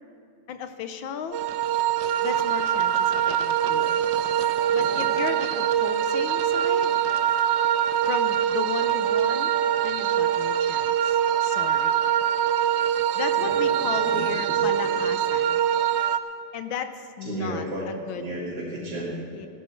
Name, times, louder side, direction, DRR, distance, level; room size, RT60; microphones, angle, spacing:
voice 1, 0.5-1.4 2.2-3.9 4.7-7.0 8.0-9.5 9.8-12.0 13.2-15.6 16.5-18.2 19.3-19.5, left 7 dB, 70° left, 9 dB, 1.5 m, -35 dB
sound 1, 1.3-16.2, right 9 dB, 75° right, 1.1 m, -23 dB
voice 2, 3.7-4.2 4.7-5.1 13.3-15.0 17.2-17.9 18.1-19.2, right 1 dB, 55° right, -9 dB, 3.4 m, -34 dB
17.0 x 13.0 x 4.5 m, 2.3 s
omnidirectional pair, 2.3 m